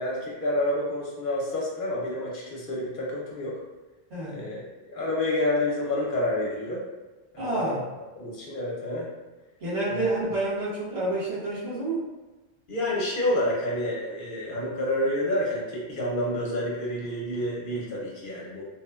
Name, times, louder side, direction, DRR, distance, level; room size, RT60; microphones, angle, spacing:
voice 1, 0.0-3.6 4.2-6.8 7.3-7.8 8.1-9.1 9.9-10.1 12.7-18.6, left 1 dB, 60° left, -4 dB, 0.7 m, -29 dB
voice 2, 4.1-4.4 7.4-7.8 9.6-12.1, right 2 dB, 80° right, -10 dB, 1.5 m, -28 dB
3.0 x 2.0 x 2.3 m, 1.1 s
omnidirectional pair, 1.1 m